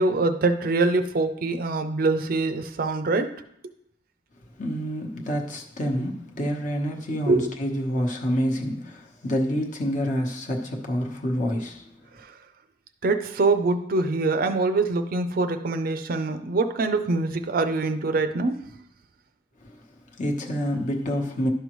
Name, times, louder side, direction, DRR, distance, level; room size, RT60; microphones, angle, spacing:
voice 1, 0.0-3.3 7.3-7.5 13.0-18.6, right 3 dB, 50° right, 0.5 m, -24 dB
voice 2, 4.6-11.9 19.6-19.8 20.2-21.5, equal, 45° left, 1.0 m, -27 dB
11.5 x 5.4 x 3.1 m
head